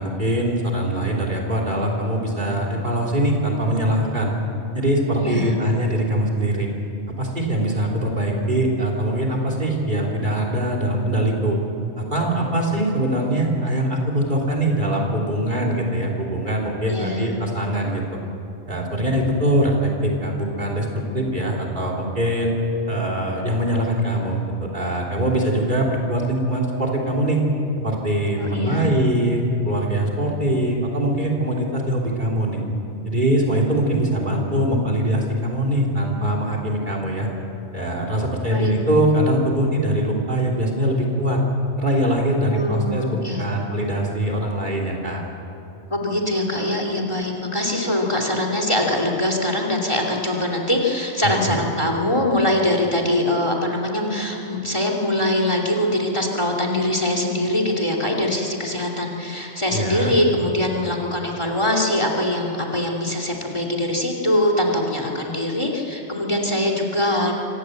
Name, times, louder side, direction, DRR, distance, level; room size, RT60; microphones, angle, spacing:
voice 1, 0.0-4.3 4.7-6.7 7.2-11.6 12.0-18.2 18.7-22.5 22.9-27.4 27.8-32.6 33.0-37.3 37.7-41.4 41.8-45.2 51.2-51.5 59.7-60.1, right 1 dB, 40° right, 1 dB, 3.4 m, -22 dB
voice 2, 5.2-5.5 16.9-17.3 28.4-28.8 38.5-38.7 42.5-43.4 45.9-67.3, left 1 dB, 25° left, 2 dB, 2.7 m, -23 dB
25.5 x 18.0 x 7.9 m, 2.7 s
omnidirectional pair, 1.2 m